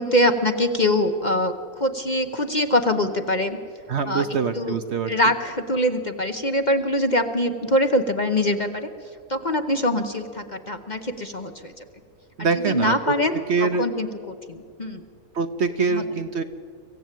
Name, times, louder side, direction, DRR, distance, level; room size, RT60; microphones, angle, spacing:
voice 1, 0.0-3.6 4.1-4.2 4.5-4.8 5.1-8.9 9.3-11.7 12.5-15.0 15.9-16.1, left 1 dB, 35° left, 7 dB, 0.9 m, -23 dB
voice 2, 3.9-5.1 12.4-13.1 13.5-13.9 15.3-16.4, right 5 dB, 55° right, 9 dB, 0.9 m, -24 dB
24.5 x 15.5 x 9.1 m, 2.4 s
omnidirectional pair, 1.6 m